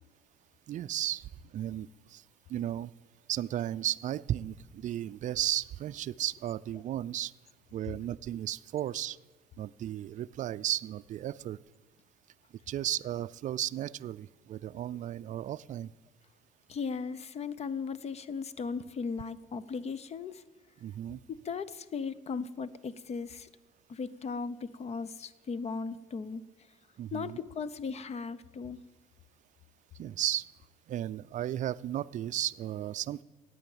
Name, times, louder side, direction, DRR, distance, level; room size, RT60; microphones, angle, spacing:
voice 1, 0.7-2.2 2.5-2.9 3.3-7.3 7.7-9.2 9.6-11.6 12.7-15.9 20.8-21.2 27.0-27.4 30.0-30.5 30.9-33.2, right 12 dB, 50° right, 16 dB, 0.4 m, -34 dB
voice 2, 16.7-20.4 21.3-23.5 23.9-26.4 27.1-28.8, left 5 dB, 40° left, 17 dB, 0.7 m, -37 dB
14.5 x 9.2 x 7.9 m, 1.2 s
cardioid pair, 110°, 17 cm